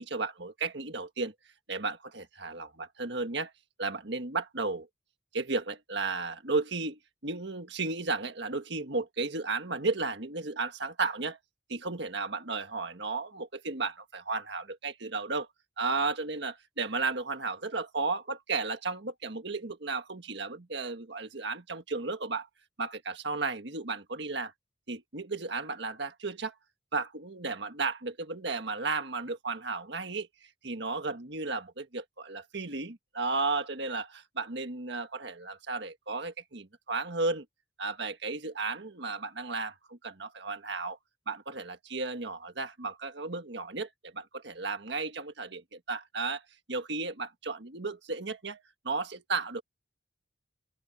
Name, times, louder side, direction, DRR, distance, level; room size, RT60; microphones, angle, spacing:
voice 1, 0.0-1.3 1.7-3.5 3.8-4.9 5.3-11.4 11.7-15.5 15.8-22.5 22.8-24.5 24.9-26.5 26.9-30.3 30.6-37.4 37.8-41.0 41.3-46.4 46.7-49.6, right 3 dB, 60° right, 1.7 m, -34 dB
open air
head